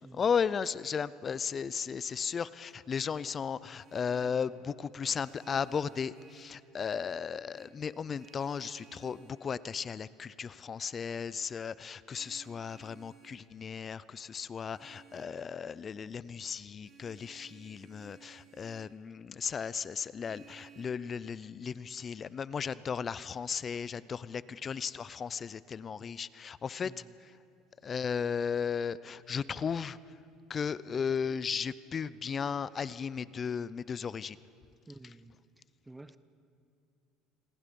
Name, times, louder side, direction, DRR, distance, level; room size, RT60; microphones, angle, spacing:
voice 1, 0.1-27.0 27.8-30.2 30.5-34.4, left 6 dB, 30° left, 18 dB, 0.6 m, -35 dB
Vehicle horn car horn honking, 3.5-4.5 5.1-6.6 7.5-9.5 12.1-13.5 14.7-15.4 16.8-19.0 20.2-20.8, right 7 dB, 40° right, 4.1 m, -58 dB
voice 2, 26.8-27.1 34.9-35.4 35.8-36.2, right 2 dB, 10° right, 13 dB, 0.8 m, -51 dB
28.5 x 21.5 x 5.4 m, 2.4 s
supercardioid pair, 105°, 0 cm